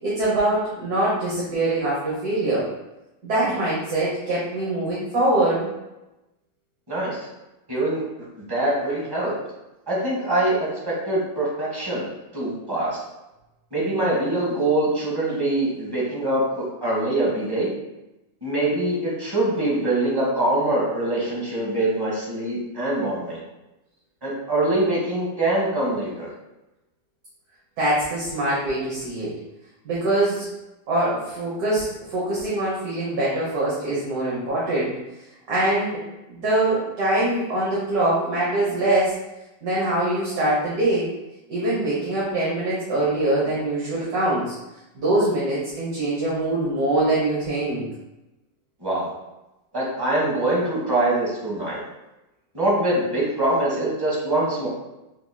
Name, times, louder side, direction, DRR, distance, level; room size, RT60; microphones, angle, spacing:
voice 1, 0.0-2.7 3.2-5.7 27.8-29.3 29.8-30.4 30.9-35.0 35.5-36.0 36.3-39.1 39.6-41.1 41.5-44.5 44.9-47.8, right 1 dB, 60° right, -7 dB, 1.5 m, -23 dB
voice 2, 7.7-8.0 8.5-9.3 9.9-12.1 12.3-13.0 13.7-17.7 18.4-23.4 24.2-26.3 48.8-49.1 49.7-51.8 52.5-54.7, right 1 dB, 15° right, -6 dB, 0.9 m, -23 dB
5.9 x 2.9 x 2.2 m, 0.96 s
omnidirectional pair, 2.0 m